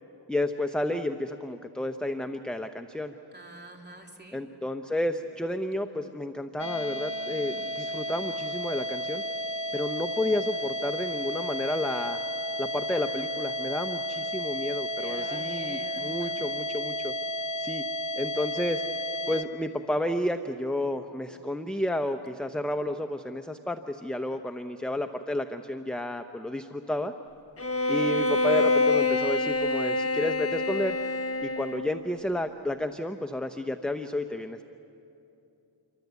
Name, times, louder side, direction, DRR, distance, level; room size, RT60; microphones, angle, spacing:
voice 1, 0.3-3.1 4.3-9.2 9.7-12.2 12.6-17.1 17.6-17.8 18.2-18.8 19.3-27.1 27.9-31.0 31.4-34.6, left 1 dB, ahead, 7 dB, 0.8 m, -31 dB
voice 2, 3.3-4.4 15.0-16.4 28.4-28.5, right 1 dB, 25° right, 1 dB, 3.3 m, -45 dB
sound 1, 6.6-19.4, equal, 70° left, 1.0 m, -33 dB
Bowed string instrument, 27.6-32.0, left 2 dB, 30° left, 1.3 m, -26 dB
28.0 x 24.5 x 8.3 m, 2.8 s
wide cardioid pair, 65°, 43 cm